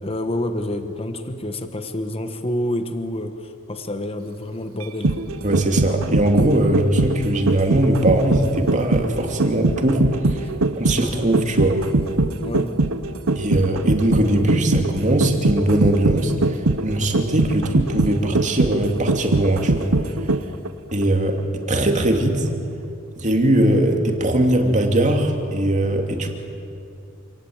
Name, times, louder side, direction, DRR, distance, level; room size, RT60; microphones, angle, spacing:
voice 1, 0.0-5.3 10.4-10.5 12.4-12.7, left 1 dB, 25° left, 8 dB, 1.3 m, -28 dB
sound 1, 4.8-20.7 21.0-21.1, right 2 dB, 85° right, 1.0 m, -22 dB
voice 2, 5.4-10.5 10.7-11.8 13.3-19.9 20.9-21.4 21.7-22.5 23.2-26.3, right 1 dB, 35° right, 3 dB, 2.8 m, -20 dB
28.0 x 18.5 x 8.8 m, 2.6 s
head